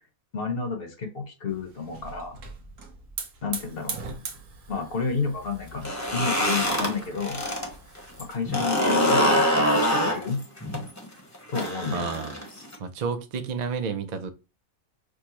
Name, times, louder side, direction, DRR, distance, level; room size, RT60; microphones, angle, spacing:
voice 1, 0.3-2.4 3.4-4.0 4.7-7.4 8.2-10.4 11.5-12.1, left 5 dB, 45° left, 0.9 m, -31 dB
Hiss / Fire, 1.5-8.3, right 4 dB, 65° right, 1.2 m, -41 dB
sound 1, 5.7-7.7 8.0-12.8, equal, 15° left, 0.8 m, -24 dB
voice 2, 11.9-12.3 12.8-14.3, right 5 dB, 90° right, 0.3 m, -30 dB
6.4 x 2.2 x 2.9 m
omnidirectional pair, 1.5 m